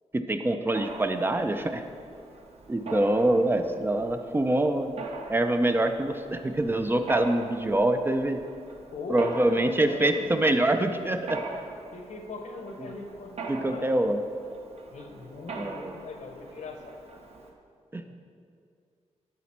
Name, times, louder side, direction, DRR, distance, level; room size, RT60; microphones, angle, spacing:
voice 1, 0.1-1.8 2.7-4.9 5.3-8.4 9.1-11.4 13.5-14.2 15.5-16.0 17.9-18.0, right 1 dB, 20° right, 7 dB, 0.4 m, -25 dB
Mechanisms, 0.7-17.5, right 3 dB, 60° right, 0.8 m, -42 dB
voice 2, 8.9-10.5 11.9-14.0 14.9-17.0 18.1-18.2, left 3 dB, 75° left, 4 dB, 0.9 m, -40 dB
11.0 x 4.2 x 4.3 m, 2.3 s
wide cardioid pair, 130°, 12 cm